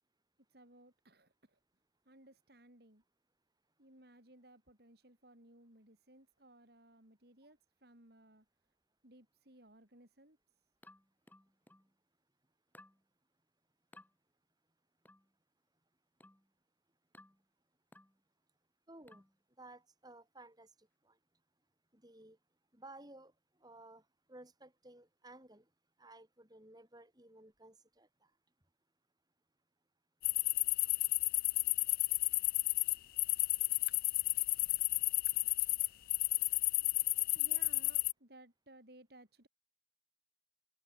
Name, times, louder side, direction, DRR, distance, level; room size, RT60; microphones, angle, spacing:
voice 1, 0.5-1.6 2.1-3.0 3.8-8.5 9.0-10.4 37.3-39.5, right 1 dB, 60° right, 5.7 m, -61 dB
Cartoon Plug, 10.8-11.9 12.7-13.0 13.9-14.1 15.1-15.3 16.2-16.5 17.1-17.4 17.9-18.2 19.1-19.4, left 1 dB, 10° left, 5.6 m, -60 dB
voice 2, 18.9-19.2 19.6-20.7 21.0-21.2 21.9-22.4 22.7-23.3 23.6-24.0 24.3-25.7 26.0-28.3, right 2 dB, 20° right, 5.4 m, -56 dB
sound 1, 30.2-38.1, left 19 dB, 55° left, 0.4 m, -32 dB
head